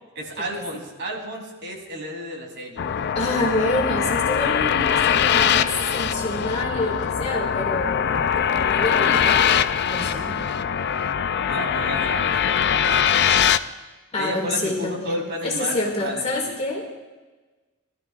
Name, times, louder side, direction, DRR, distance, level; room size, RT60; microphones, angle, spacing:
voice 1, 0.1-2.8 11.5-12.7 14.2-16.6, equal, 60° right, -1 dB, 3.3 m, -32 dB
sound 1, 2.8-13.6, left 8 dB, 55° left, 0.4 m, -22 dB
voice 2, 3.1-9.5 9.8-10.4 14.1-17.0, left 2 dB, 30° left, -1 dB, 2.2 m, -27 dB
21.0 x 13.0 x 2.5 m, 1.2 s
head